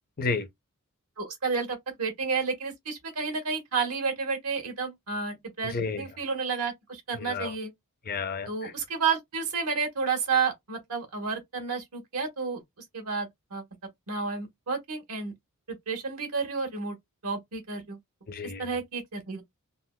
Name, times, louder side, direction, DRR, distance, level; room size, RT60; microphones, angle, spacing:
voice 1, 1.2-7.7 8.5-12.6 12.9-13.6 14.1-15.3 15.7-17.0 17.2-18.0 18.6-19.4, right 5 dB, 85° right, 1.3 m, -31 dB
voice 2, 5.6-6.0 7.1-7.5 8.1-8.7 18.3-18.6, left 4 dB, 40° left, 0.5 m, -32 dB
3.7 x 2.3 x 2.2 m
head